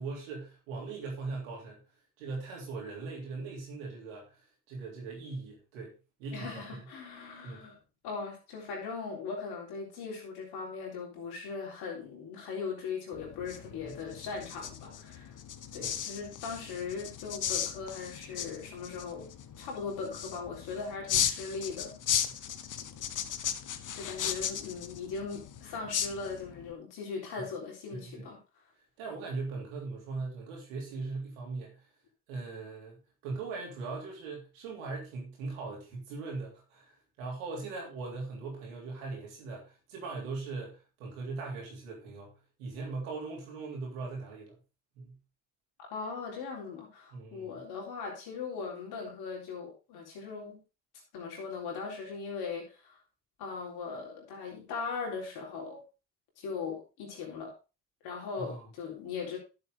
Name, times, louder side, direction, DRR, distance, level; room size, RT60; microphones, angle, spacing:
voice 1, 0.0-1.8 2.2-4.3 4.7-5.9 6.2-6.9 7.4-7.7 13.7-13.9 15.8-16.0 22.1-22.2 27.4-27.5 27.9-28.3 29.0-31.8 32.3-33.0 33.2-42.3 42.6-44.5 45.0-45.2 47.1-47.5 58.4-58.7, right 3 dB, 85° right, 3.5 m, -40 dB
voice 2, 6.3-7.8 8.0-15.4 15.7-19.3 19.6-22.0 23.9-28.4 45.8-50.6 51.1-53.0 53.4-55.8 56.4-57.5 58.0-59.4, left 5 dB, 75° left, 3.8 m, -39 dB
sound 1, 13.1-26.7, left 9 dB, 50° left, 1.1 m, -36 dB
11.5 x 6.8 x 3.7 m
hypercardioid pair, 45°, 39 cm